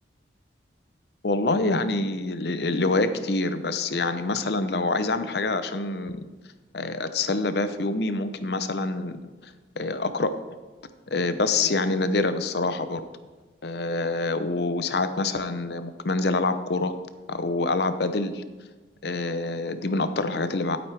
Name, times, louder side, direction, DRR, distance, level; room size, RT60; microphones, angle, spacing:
voice 1, 1.2-6.2 6.7-9.2 9.4-10.3 11.1-13.0 13.6-16.9 17.3-18.4 19.0-20.8, left 3 dB, 60° left, 10 dB, 0.7 m, -26 dB
12.0 x 9.1 x 3.4 m, 1.3 s
head